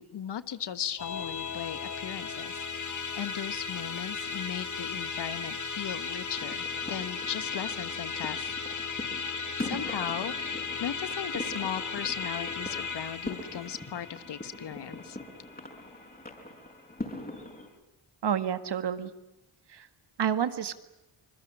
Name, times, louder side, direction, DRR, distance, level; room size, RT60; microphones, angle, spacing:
voice 1, 0.0-8.6 9.6-15.2, left 9 dB, 60° left, 14 dB, 1.4 m, -37 dB
Musical instrument, 1.0-16.5, left 5 dB, 40° left, 2.4 m, -36 dB
sound 1, 6.4-17.7, left 1 dB, 20° left, 6.3 m, -42 dB
voice 2, 18.2-19.1 19.7-19.9 20.2-20.7, right 8 dB, 60° right, 11 dB, 1.9 m, -29 dB
26.0 x 21.0 x 9.9 m, 0.87 s
cardioid pair, 65°, 45 cm